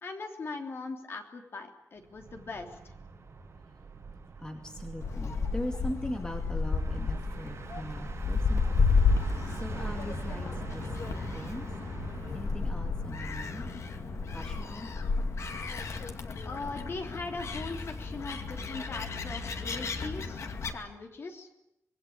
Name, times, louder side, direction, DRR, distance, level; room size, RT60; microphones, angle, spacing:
voice 1, 0.0-2.7 16.4-20.4 20.7-21.5, left 3 dB, 50° left, 4 dB, 3.4 m, -40 dB
sound 1, 2.0-14.7, right 4 dB, 60° right, 7.0 m, -44 dB
voice 2, 4.4-8.8 9.6-11.0 11.3-11.7 12.3-13.7 14.3-14.9, left 1 dB, 15° left, 3 dB, 2.4 m, -40 dB
Gull seagull, 5.0-20.7, left 4 dB, 70° left, 2.3 m, -32 dB
25.5 x 21.0 x 8.7 m, 0.85 s
wide cardioid pair, 165°, 5 cm